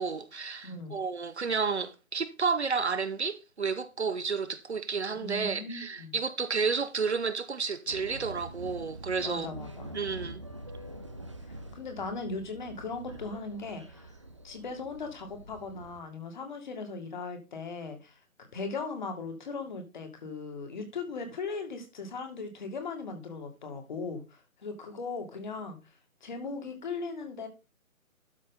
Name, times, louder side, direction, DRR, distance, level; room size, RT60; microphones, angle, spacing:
voice 1, 0.0-9.5 9.9-10.4, right 5 dB, 50° right, 0.9 m, -31 dB
voice 2, 5.2-6.2 9.2-10.0 11.4-14.1 14.4-18.2 18.5-25.8 26.2-27.5, left 4 dB, 35° left, 2.1 m, -38 dB
sound 1, 7.9-16.0, right 1 dB, 20° right, 0.7 m, -45 dB
12.5 x 5.5 x 3.8 m
figure-of-eight pair, 155°, 42 cm